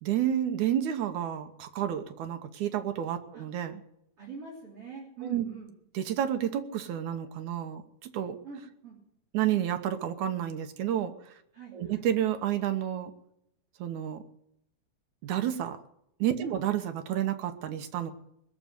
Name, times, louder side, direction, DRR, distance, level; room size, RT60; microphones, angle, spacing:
voice 1, 0.0-3.7 5.2-5.4 6.0-8.4 9.3-11.1 11.7-13.1 13.8-14.2 15.2-15.8 16.2-18.1, right 10 dB, 75° right, 8 dB, 2.4 m, -30 dB
voice 2, 4.2-5.7 8.4-9.0 11.5-12.1 16.4-16.6, right 4 dB, 45° right, -5 dB, 4.2 m, -44 dB
20.5 x 6.8 x 9.3 m, 0.76 s
omnidirectional pair, 3.6 m